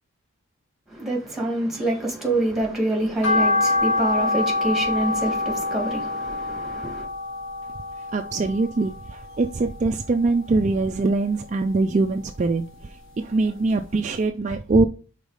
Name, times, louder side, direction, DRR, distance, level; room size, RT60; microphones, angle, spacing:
voice 1, 0.9-7.1, right 1 dB, ahead, 1.7 m, -26 dB
sound 1, 3.2-9.5 9.9-11.1 11.4-12.8 13.2-13.3 13.8-13.9 14.1-14.2, left 2 dB, 60° left, 1.4 m, -26 dB
voice 2, 8.1-12.6 13.2-14.8, right 3 dB, 35° right, 0.3 m, -22 dB
5.4 x 4.1 x 4.8 m
head